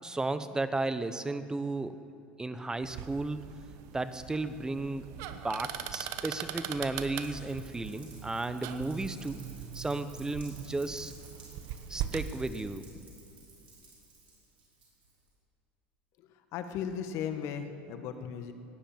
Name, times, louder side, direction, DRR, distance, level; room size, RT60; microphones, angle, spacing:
voice 1, 0.0-2.0 2.4-3.5 3.9-9.4 9.7-11.1 11.9-12.8, right 2 dB, 10° right, 12 dB, 0.9 m, -34 dB
sound 1, 2.8-12.3, right 10 dB, 60° right, 1.0 m, -41 dB
Rain, 7.2-15.3, right 2 dB, 85° right, 4.8 m, -54 dB
voice 2, 16.2-18.5, left 8 dB, 60° left, 8 dB, 1.4 m, -37 dB
17.5 x 10.0 x 7.3 m, 2.8 s
hypercardioid pair, 90°, 6 cm